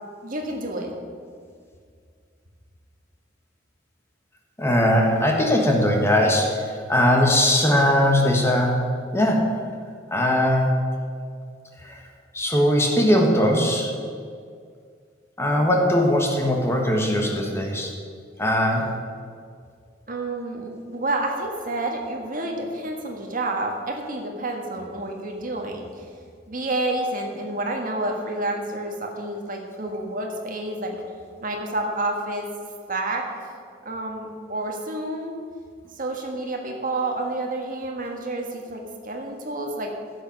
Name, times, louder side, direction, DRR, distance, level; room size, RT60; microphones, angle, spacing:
voice 1, 0.2-0.9 20.1-26.0 26.5-31.0 31.4-32.5 32.9-33.3 33.8-35.3 36.0-39.9, right 2 dB, 45° right, 2 dB, 1.6 m, -29 dB
voice 2, 4.6-8.8 9.1-9.5 10.1-10.7 11.8-12.0 12.3-13.9 15.4-17.9 18.4-18.9, left 1 dB, 15° left, 1 dB, 1.4 m, -20 dB
15.0 x 6.7 x 5.9 m, 2.1 s
head